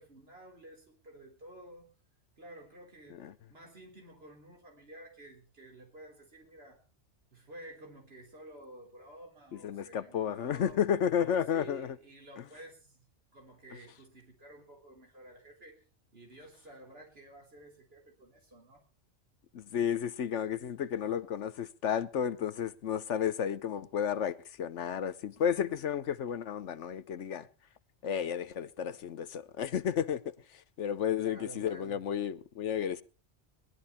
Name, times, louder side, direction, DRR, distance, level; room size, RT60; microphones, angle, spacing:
voice 1, 0.0-1.9 2.4-6.8 7.3-10.8 11.2-13.1 13.3-15.8 16.1-18.8 31.2-32.0, right 1 dB, 55° right, 4.0 m, -52 dB
voice 2, 9.5-12.0 19.5-27.5 28.0-30.3 30.8-33.0, left 8 dB, 80° left, 1.2 m, -32 dB
19.5 x 12.0 x 4.3 m
omnidirectional pair, 1.2 m